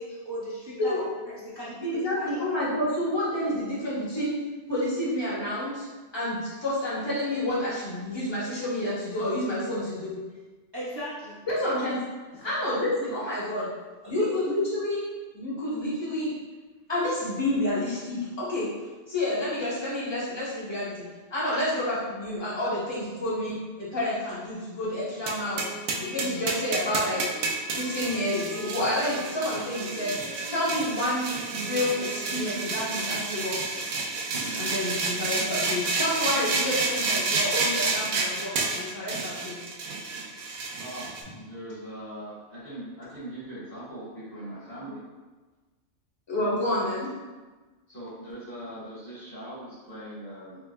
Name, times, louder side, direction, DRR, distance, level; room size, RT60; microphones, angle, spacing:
voice 1, 0.0-2.4 10.7-11.4 12.3-12.6 13.4-13.5 14.0-14.3 21.5-21.7, equal, 30° right, -9 dB, 0.5 m, -38 dB
voice 2, 1.8-4.4 4.7-5.8 6.1-10.2 11.5-11.9 12.4-13.7 14.1-15.0 15.3-16.3 16.9-18.7 19.1-21.0 21.3-25.7 26.0-27.3 27.7-30.2 30.5-33.7 34.6-39.6 46.3-47.1, left 1 dB, 20° left, -8 dB, 1.1 m, -29 dB
sound 1, 25.3-41.2, right 3 dB, 80° right, 0.9 m, -30 dB
Wind instrument woodwind instrument, 25.4-33.1, right 2 dB, 70° left, 1.8 m, -44 dB
voice 3, 41.4-45.0 47.9-50.6, right 1 dB, 45° left, -10 dB, 1.8 m, -40 dB
4.1 x 3.2 x 2.2 m, 1.3 s
omnidirectional pair, 1.3 m